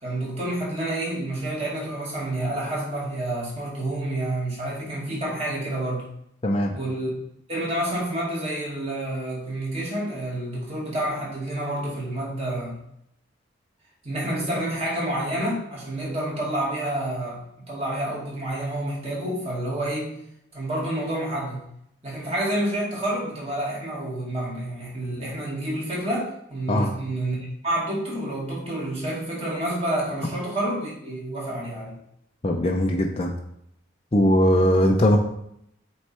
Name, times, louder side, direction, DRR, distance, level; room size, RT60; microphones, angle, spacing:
voice 1, 0.0-6.0 6.7-7.1 7.5-12.8 14.0-20.1 20.5-21.6 22.0-27.4 27.6-32.0, right 1 dB, 30° right, -5 dB, 2.1 m, -29 dB
voice 2, 6.4-6.7 26.7-26.9 32.4-33.3 34.1-35.2, equal, 30° left, 1 dB, 0.6 m, -20 dB
8.0 x 3.2 x 4.4 m, 0.75 s
head